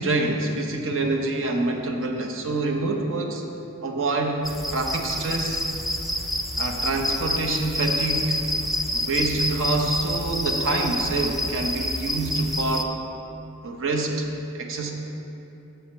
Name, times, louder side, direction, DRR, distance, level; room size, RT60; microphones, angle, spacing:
voice 1, 0.0-3.4 3.8-4.4 4.7-5.7 6.6-8.4 8.9-13.0 13.6-14.9, right 2 dB, 60° right, 3 dB, 0.9 m, -26 dB
sound 1, 4.4-12.8, left 1 dB, ahead, 0.4 m, -28 dB
7.9 x 5.0 x 7.0 m, 2.9 s
head